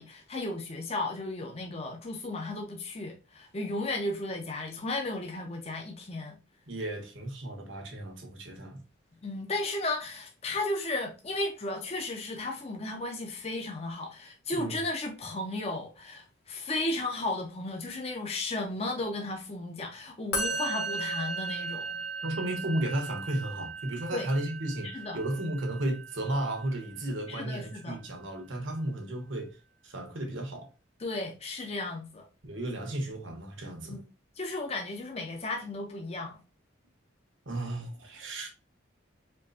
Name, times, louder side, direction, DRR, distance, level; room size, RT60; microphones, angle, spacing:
voice 1, 0.0-6.4 9.2-22.0 24.1-24.3 24.8-25.2 27.3-28.0 31.0-32.2 33.9-34.0 34.4-36.4, left 2 dB, 30° left, 0.7 m, -34 dB
voice 2, 6.7-8.8 14.5-14.8 22.2-29.6 29.8-30.7 32.4-34.0 37.4-38.5, right 1 dB, 75° right, 1.3 m, -34 dB
Musical instrument, 20.3-27.6, right 3 dB, 55° left, 1.5 m, -37 dB
4.5 x 3.1 x 2.7 m
head